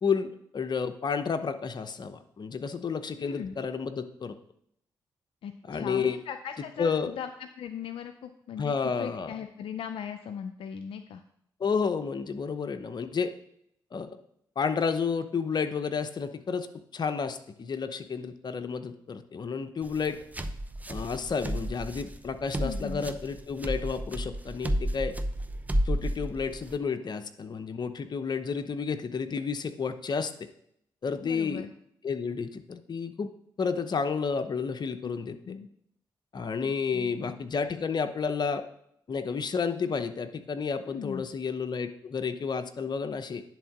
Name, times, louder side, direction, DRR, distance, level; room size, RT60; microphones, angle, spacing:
voice 1, 0.0-4.4 5.7-6.2 6.8-7.1 8.6-9.3 11.6-13.3 13.9-14.2 14.6-16.7 16.9-20.2 20.9-25.2 25.8-30.5 31.0-31.6 32.0-33.3 33.6-35.6 36.3-38.6 39.1-43.4, left 5 dB, 50° left, 9 dB, 0.8 m, -31 dB
voice 2, 3.2-3.5 5.4-11.2 22.6-23.1 31.2-31.7 35.4-35.7 36.6-37.4 40.9-41.3, left 8 dB, 75° left, 8 dB, 0.4 m, -39 dB
sound 1, 19.8-26.8, right 1 dB, 15° right, 0.7 m, -32 dB
10.5 x 3.6 x 6.0 m, 0.71 s
supercardioid pair, 50°, 9 cm